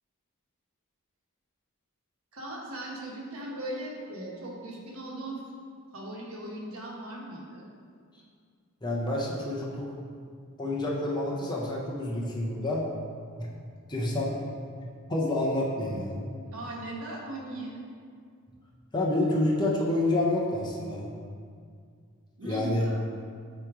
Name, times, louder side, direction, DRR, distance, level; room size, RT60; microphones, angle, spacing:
voice 1, 2.3-5.4 5.9-7.7 16.5-17.8 22.4-23.1, right 1 dB, 65° right, -3 dB, 1.3 m, -38 dB
voice 2, 8.8-9.9 10.6-12.9 13.4-13.5 13.9-14.4 15.1-16.2 18.9-21.1 22.4-22.8, left 1 dB, 20° left, -4 dB, 0.7 m, -28 dB
8.3 x 3.0 x 4.8 m, 2.1 s
head